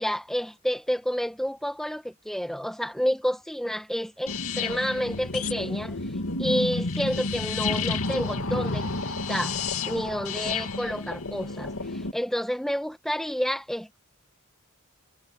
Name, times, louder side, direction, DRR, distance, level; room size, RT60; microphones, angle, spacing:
voice 1, 0.0-6.0 6.4-9.6 9.9-14.0, equal, ahead, 1.8 m, -29 dB
sound 1, 4.3-12.1, left 3 dB, 75° left, 2.5 m, -30 dB
head